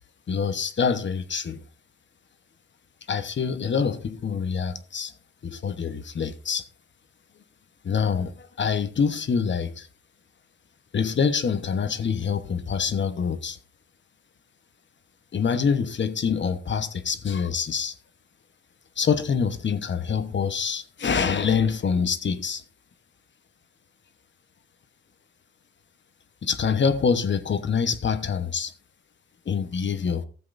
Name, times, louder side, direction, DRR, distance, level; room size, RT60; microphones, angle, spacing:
voice 1, 0.3-1.6 3.1-5.1 5.4-6.6 7.8-9.9 10.9-13.6 15.3-17.9 19.0-22.6 26.4-28.7 29.5-30.2, left 6 dB, 40° left, 1.1 m, -25 dB
14.5 x 7.7 x 2.6 m
cardioid pair, 90°, 30 cm